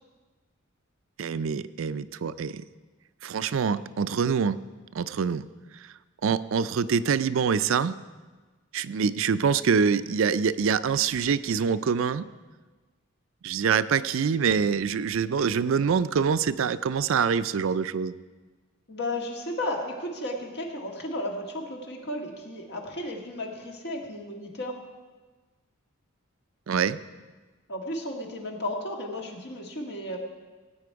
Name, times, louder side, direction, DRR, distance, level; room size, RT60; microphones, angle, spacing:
voice 1, 1.2-2.6 3.2-4.6 4.9-5.5 6.2-7.9 8.7-12.3 13.4-18.1 26.7-27.0, right 6 dB, 65° right, 14 dB, 0.4 m, -25 dB
voice 2, 18.9-24.7 27.7-30.2, left 1 dB, 50° left, 1 dB, 1.9 m, -34 dB
17.5 x 8.5 x 4.7 m, 1.3 s
head